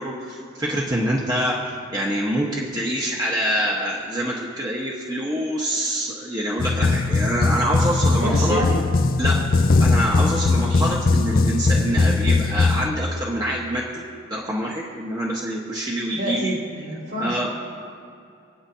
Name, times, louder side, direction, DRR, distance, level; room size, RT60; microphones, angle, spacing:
voice 1, 0.0-1.6 1.9-8.6 9.2-9.4 9.8-16.6 17.2-17.5, equal, 20° right, -4 dB, 1.3 m, -26 dB
sound 1, 6.6-12.9, left 3 dB, 45° left, 0.4 m, -19 dB
voice 2, 8.2-8.8 16.1-17.5, right 1 dB, 50° right, -4 dB, 3.2 m, -27 dB
28.5 x 9.7 x 2.9 m, 2.5 s
head